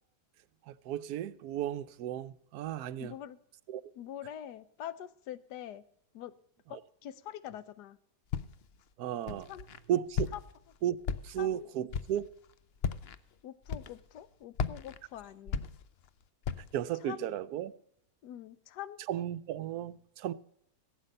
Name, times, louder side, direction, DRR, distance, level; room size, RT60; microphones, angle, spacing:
voice 1, 0.7-3.2 3.7-3.8 6.7-6.8 9.0-9.5 9.9-10.3 10.8-11.0 11.2-12.3 16.7-17.7 19.1-20.3, right 11 dB, 75° right, 1.1 m, -34 dB
voice 2, 3.0-3.4 4.0-5.8 6.1-6.3 6.7-8.0 9.5-9.7 10.3-10.4 11.4-11.7 13.4-15.6 17.0-17.4 18.2-19.0, left 11 dB, 90° left, 1.3 m, -44 dB
Walk footsteps, 8.3-8.8 9.3-9.8 10.1-10.6 11.0-11.5 11.9-12.3 12.8-13.2 13.7-14.2 14.5-16.1 16.4-16.8, left 6 dB, 60° left, 0.7 m, -35 dB
15.5 x 8.2 x 5.3 m
omnidirectional pair, 1.7 m